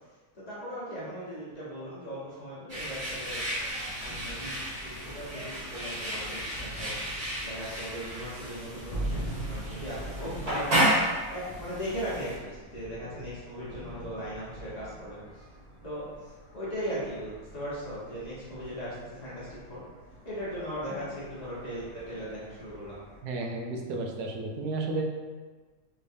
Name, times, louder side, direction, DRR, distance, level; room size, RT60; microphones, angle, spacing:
voice 1, 0.3-3.4 4.0-4.6 4.8-7.0 7.4-10.9 11.3-15.4 15.8-19.8 20.2-23.0, equal, 30° left, -9 dB, 1.0 m, -38 dB
sound 1, 2.7-12.3, equal, 45° right, 1.6 m, -32 dB
sound 2, 3.5-23.2, right 1 dB, 80° left, 0.3 m, -44 dB
voice 2, 23.2-25.0, right 2 dB, 85° right, 1 dB, 1.1 m, -32 dB
3.2 x 3.2 x 2.6 m, 1.4 s
omnidirectional pair, 1.6 m